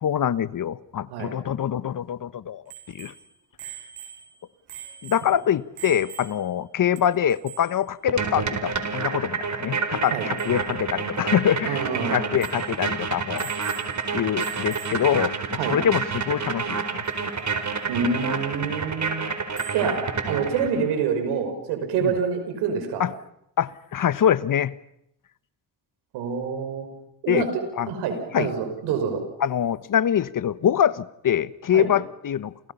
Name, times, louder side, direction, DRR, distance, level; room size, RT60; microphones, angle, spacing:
voice 1, 0.0-2.6 2.9-3.1 5.0-13.5 14.1-15.3 15.7-17.0 22.0-22.2 23.0-23.1 23.6-24.7 27.3-27.4 27.8-27.9 28.3-28.5 29.4-32.7, left 9 dB, 55° left, 16 dB, 1.2 m, -24 dB
Bicycle bell, 2.7-6.7 7.0-7.1 7.3-7.8 10.0-10.1 10.4-10.6 11.2-11.3 11.6-11.7 12.4-12.7 13.3-14.1 14.4-15.2 17.1-17.2 19.6-19.9, right 10 dB, 75° right, 7.9 m, -42 dB
sound 1, 8.1-20.9, right 5 dB, 45° right, 4.6 m, -29 dB
voice 2, 11.6-12.3 15.6-15.8 17.9-19.3 19.7-20.0 20.3-23.0 26.1-26.9 27.2-27.5 27.9-29.2 31.7-31.9, right 6 dB, 90° right, 6 dB, 5.8 m, -26 dB
30.0 x 29.0 x 5.6 m, 0.76 s
supercardioid pair, 65°, 39 cm